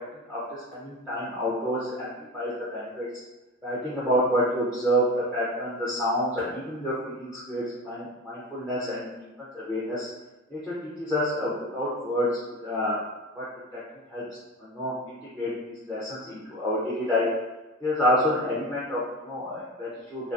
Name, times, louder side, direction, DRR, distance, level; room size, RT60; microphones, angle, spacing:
voice 1, 0.7-3.1 3.6-9.3 9.5-10.1 10.5-12.3 12.6-13.0 13.4-13.5 13.7-13.8 14.1-14.2 14.6-14.9 15.3-17.2 17.8-20.3, equal, 5° right, -10 dB, 0.4 m, -28 dB
2.3 x 2.3 x 2.5 m, 1.1 s
head